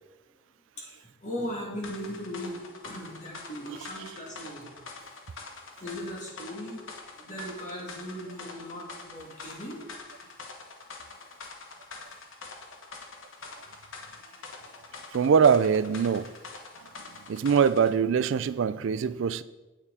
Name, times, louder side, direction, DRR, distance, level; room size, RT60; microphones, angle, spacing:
voice 1, 1.2-4.7 5.8-6.8 7.2-9.8, equal, 40° left, 2.8 m, -38 dB
sound 1, 1.8-18.0, left 4 dB, 70° left, 1.3 m, -45 dB
voice 2, 15.1-16.3 17.3-19.4, right 6 dB, 65° right, 0.4 m, -23 dB
9.1 x 8.8 x 4.2 m
head